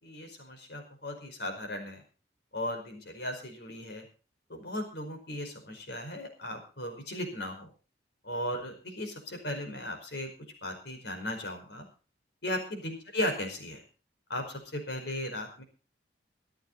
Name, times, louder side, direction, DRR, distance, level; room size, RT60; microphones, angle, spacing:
voice 1, 0.0-2.0 2.5-4.1 4.5-7.7 8.2-10.3 10.6-11.9 12.4-13.8 14.3-15.6, left 1 dB, 60° left, 5 dB, 5.0 m, -36 dB
25.0 x 9.1 x 4.0 m, 0.36 s
head